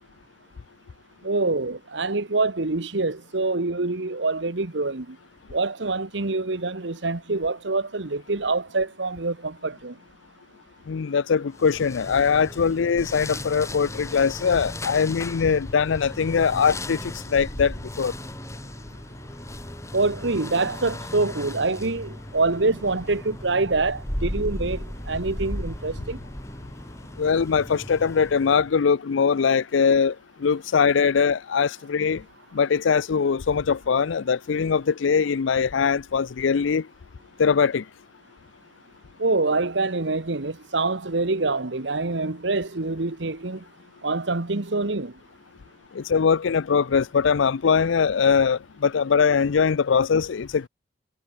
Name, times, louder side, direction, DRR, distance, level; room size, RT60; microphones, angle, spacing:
voice 1, 1.2-5.2 5.5-10.0 19.9-26.2 39.2-43.7 44.0-45.1, right 3 dB, 75° right, 1.3 m, -25 dB
voice 2, 10.9-17.0 17.3-18.1 27.2-30.1 30.4-32.2 32.5-36.8 37.4-37.8 46.0-50.7, left 6 dB, 85° left, 0.5 m, -21 dB
sound 1, 11.5-28.7, left 1 dB, 15° left, 2.9 m, -36 dB
head